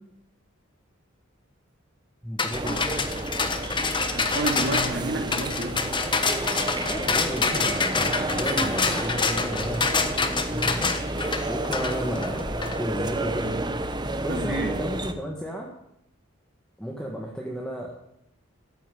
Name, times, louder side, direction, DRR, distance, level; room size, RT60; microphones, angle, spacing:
voice 1, 2.2-2.9 6.6-10.1 10.5-12.5 12.7-13.6 14.2-15.7 16.8-18.0, equal, 5° left, -2 dB, 1.7 m, -33 dB
sound 1, 2.4-12.8, left 4 dB, 20° left, 1.2 m, -26 dB
sound 2, 2.5-15.1, right 2 dB, 20° right, 1.0 m, -31 dB
voice 2, 3.8-5.8 14.3-14.7, right 2 dB, 55° right, 0 dB, 3.5 m, -30 dB
14.0 x 9.2 x 9.4 m, 0.78 s
head